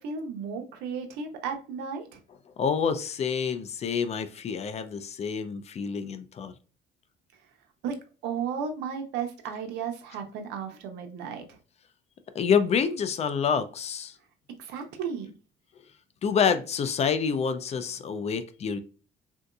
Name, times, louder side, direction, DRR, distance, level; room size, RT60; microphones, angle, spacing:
voice 1, 0.0-2.2 7.8-8.0 8.2-11.4 14.6-15.3, right 6 dB, 90° right, 0.7 m, -34 dB
voice 2, 2.6-6.5 12.3-14.1 16.2-18.8, left 6 dB, 40° left, 0.4 m, -27 dB
3.7 x 2.7 x 2.3 m
cardioid pair, 110°, 17 cm